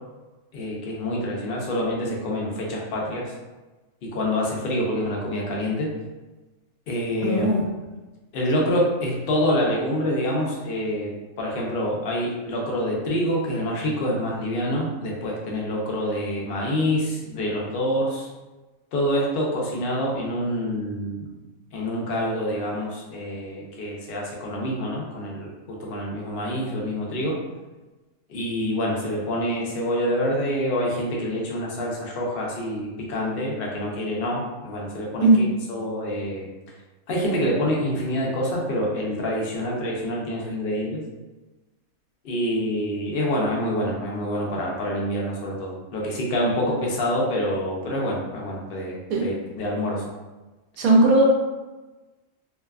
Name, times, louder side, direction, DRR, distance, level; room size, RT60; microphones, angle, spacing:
voice 1, 0.5-3.3 4.0-5.9 6.9-7.4 8.3-18.3 18.9-21.3 21.7-27.4 28.3-35.3 35.7-36.5 37.1-41.0 42.2-50.0, equal, 65° left, -2 dB, 0.5 m, -26 dB
voice 2, 7.2-7.6 35.2-35.4 49.1-49.2 50.8-51.2, right 2 dB, 85° right, -2 dB, 1.0 m, -17 dB
2.6 x 2.3 x 2.2 m, 1.2 s
omnidirectional pair, 1.5 m